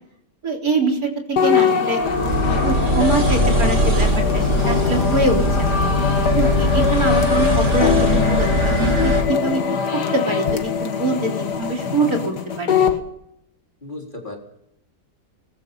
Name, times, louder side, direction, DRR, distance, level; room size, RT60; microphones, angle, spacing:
voice 1, 0.4-2.0 2.4-5.8 6.3-9.6 9.9-12.8, right 2 dB, 60° right, 1 dB, 4.3 m, -24 dB
sound 1, 1.4-13.0, left 6 dB, 80° left, 2.2 m, -22 dB
sound 2, 2.0-9.2, equal, 45° right, 3.0 m, -20 dB
voice 2, 4.5-5.2 13.8-14.4, left 2 dB, 30° left, 1 dB, 4.2 m, -36 dB
22.5 x 21.0 x 5.6 m, 0.77 s
omnidirectional pair, 1.7 m